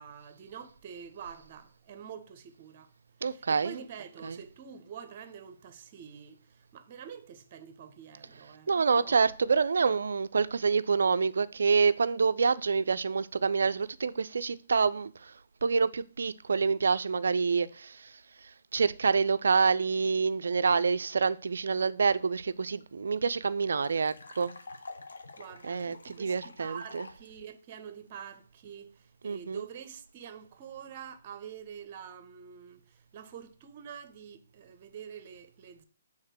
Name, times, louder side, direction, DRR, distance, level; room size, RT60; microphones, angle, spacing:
voice 1, 0.0-2.9 3.3-9.2 25.4-35.8, right 8 dB, 40° right, 0.9 m, -46 dB
voice 2, 3.2-3.8 4.2-4.4 8.7-15.3 15.6-18.2 18.7-24.5 25.6-27.1 29.2-29.6, right 5 dB, 70° right, 0.4 m, -27 dB
sound 1, 22.5-22.6 22.8-22.9 23.2-27.3, left 3 dB, 75° left, 1.0 m, -48 dB
6.5 x 3.7 x 6.2 m
figure-of-eight pair, 140°, 0 cm